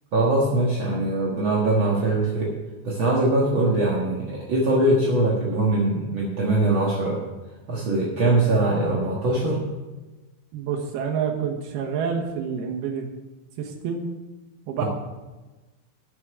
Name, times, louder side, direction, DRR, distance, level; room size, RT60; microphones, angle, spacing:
voice 1, 0.1-2.5 2.8-7.2 7.7-9.6 14.8-14.9, right 2 dB, 50° right, -4 dB, 1.6 m, -22 dB
voice 2, 10.5-13.1 13.6-14.1 14.7-14.9, right 6 dB, 90° right, 2 dB, 3.2 m, -28 dB
8.2 x 7.7 x 8.8 m, 1.2 s
omnidirectional pair, 4.4 m